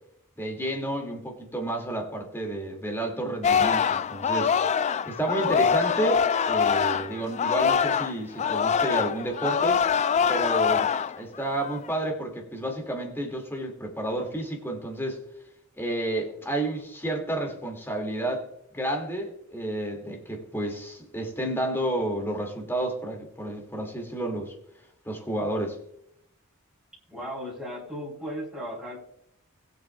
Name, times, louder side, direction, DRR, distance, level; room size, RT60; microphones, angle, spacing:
voice 1, 0.4-4.5 5.1-9.8 10.3-15.2 15.8-18.5 18.7-24.5 25.1-25.8, right 1 dB, 10° left, 2.4 m, -31 dB
Singing, 3.4-8.1 8.4-11.2 11.6-11.9, left 7 dB, 35° left, 0.3 m, -24 dB
voice 2, 27.1-29.0, equal, 5° right, 3.6 m, -36 dB
21.0 x 7.5 x 2.4 m
head